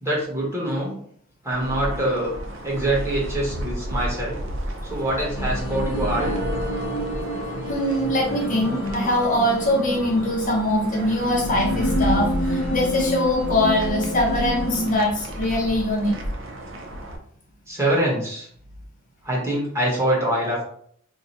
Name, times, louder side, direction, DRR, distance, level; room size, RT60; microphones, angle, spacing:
voice 1, 0.0-0.9 1.4-2.3 2.6-4.4 4.8-6.3 8.6-8.7 17.7-18.5 19.2-20.6, right 1 dB, 15° right, -5 dB, 1.1 m, -24 dB
sound 1, 1.5-17.2, equal, 65° right, 0.6 m, -32 dB
sound 2, 5.4-15.0, left 1 dB, 70° left, 0.6 m, -29 dB
voice 2, 7.7-16.1, left 1 dB, 40° left, -1 dB, 0.7 m, -22 dB
2.8 x 2.2 x 4.1 m, 0.63 s
head